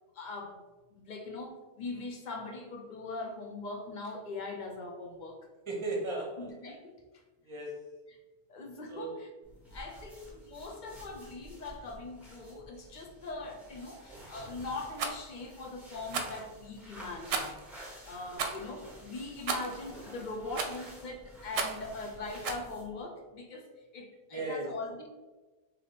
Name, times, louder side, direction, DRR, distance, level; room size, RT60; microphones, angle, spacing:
voice 1, 0.1-0.6 0.9-5.4 6.4-6.9 8.1-8.2 8.5-9.3 9.7-17.5 18.1-25.1, left 3 dB, 55° left, 2 dB, 0.7 m, -41 dB
voice 2, 5.7-6.5 7.4-7.8 8.9-9.2 14.1-14.2 19.6-19.7 24.3-24.7, right 2 dB, 30° right, -2 dB, 1.0 m, -36 dB
sound 1, 9.4-23.0, equal, ahead, 1.0 m, -51 dB
Rattle, 14.9-15.2 16.1-16.4 17.3-17.6 18.3-18.6 19.5-19.8 20.5-20.9 21.5-21.9 22.4-22.7, right 5 dB, 75° right, 0.8 m, -33 dB
3.4 x 2.8 x 4.0 m, 1.2 s
omnidirectional pair, 1.1 m